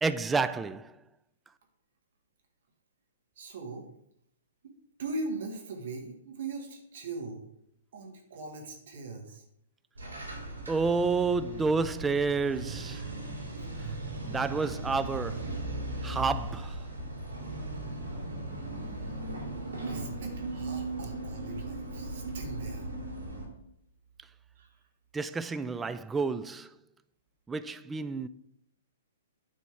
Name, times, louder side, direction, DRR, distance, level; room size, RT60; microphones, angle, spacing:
voice 1, 0.0-0.9 10.7-13.0 14.2-15.5 16.0-16.8 25.1-26.7 27.5-28.3, right 4 dB, 10° right, 0.4 m, -30 dB
voice 2, 3.4-3.8 5.0-7.4 7.9-9.4 14.1-14.3 19.8-22.9 24.6-24.7, right 3 dB, 60° right, 1.6 m, -40 dB
sound 1, 9.9-23.4, right 2 dB, 90° right, 3.2 m, -37 dB
9.4 x 4.2 x 4.9 m
hypercardioid pair, 125°, 0 cm